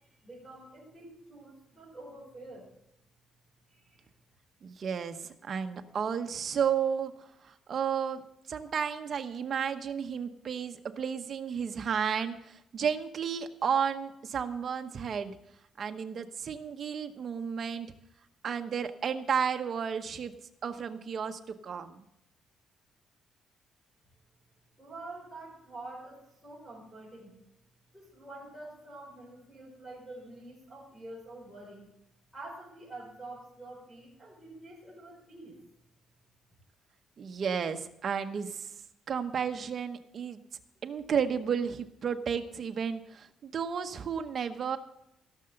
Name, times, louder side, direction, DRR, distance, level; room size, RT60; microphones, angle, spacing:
voice 1, 0.0-2.7 3.7-4.1 24.8-27.3 27.9-31.8 32.3-35.6, right 2 dB, ahead, -7 dB, 4.4 m, -47 dB
voice 2, 4.6-8.2 8.5-15.4 15.8-17.9 18.4-20.3 20.6-22.0 37.2-38.7 39.1-40.4 40.8-44.8, right 7 dB, 40° right, 7 dB, 0.9 m, -32 dB
16.5 x 6.8 x 7.8 m, 0.80 s
cardioid pair, 170°, 0 cm